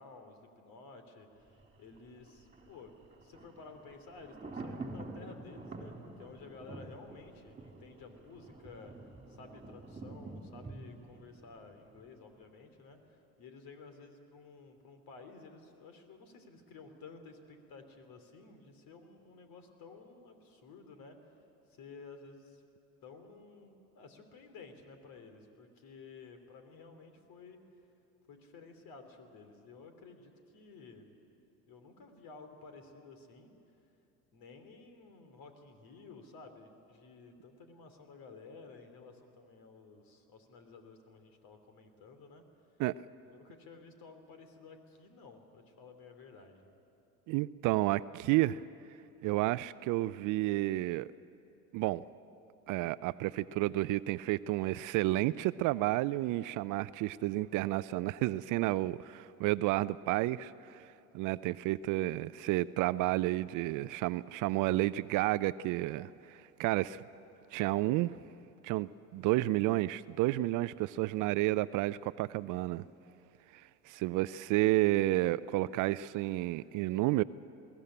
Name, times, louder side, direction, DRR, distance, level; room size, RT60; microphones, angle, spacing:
voice 1, 0.0-2.9 3.2-8.9 9.3-21.2 21.7-22.6 23.0-27.6 28.3-31.1 31.7-33.5 34.3-42.4 43.2-46.7, left 4 dB, 55° left, 3.0 m, -53 dB
Thunder, 1.4-12.4 12.7-12.8, right 2 dB, 15° right, 3.3 m, -48 dB
voice 2, 47.3-48.6 49.2-51.1 51.7-52.0 52.7-67.0 67.5-68.2 68.6-72.8 73.5-77.2, right 17 dB, 45° right, 0.5 m, -31 dB
21.5 x 15.5 x 9.9 m
hypercardioid pair, 70°, 43 cm